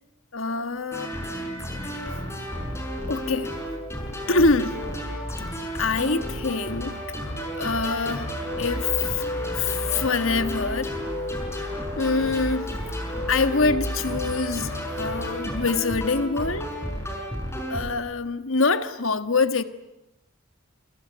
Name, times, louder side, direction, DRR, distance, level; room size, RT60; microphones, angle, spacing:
voice 1, 0.3-1.1 3.1-3.5 4.3-4.9 5.7-7.0 7.5-9.2 9.5-11.0 12.0-12.7 13.3-16.7 17.7-19.6, left 3 dB, 75° left, 1.4 m, -25 dB
sound 1, 0.9-17.9, equal, 15° left, 5.8 m, -31 dB
27.5 x 27.0 x 8.0 m
head